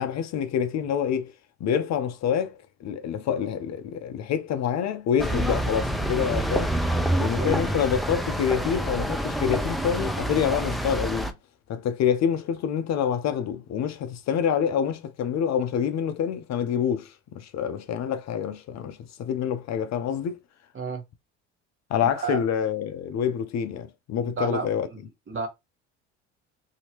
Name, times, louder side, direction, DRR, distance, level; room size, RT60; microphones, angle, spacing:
voice 1, 0.0-1.3 1.6-6.7 7.2-11.3 11.7-20.4 21.9-24.9, left 8 dB, 45° left, 0.6 m, -27 dB
sound 1, 5.2-11.3, right 1 dB, ahead, 0.4 m, -27 dB
voice 2, 22.0-22.4 24.3-25.0 25.3-25.5, right 4 dB, 35° right, 1.3 m, -31 dB
2.8 x 2.8 x 2.9 m
hypercardioid pair, 65°, 37 cm